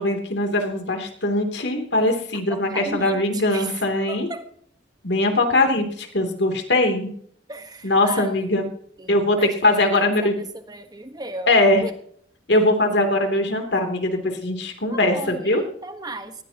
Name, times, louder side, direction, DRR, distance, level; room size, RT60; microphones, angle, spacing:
voice 1, 0.0-4.3 5.0-7.1 7.8-8.7 9.1-10.4 11.5-11.8 12.5-15.6, left 2 dB, 65° left, 4 dB, 3.0 m, -21 dB
voice 2, 2.5-3.2 3.5-3.7 4.1-4.4 7.5-8.6 9.0-10.3 10.7-11.9 14.9-16.3, right 2 dB, 20° right, 8 dB, 1.4 m, -35 dB
19.5 x 15.5 x 3.0 m, 0.62 s
head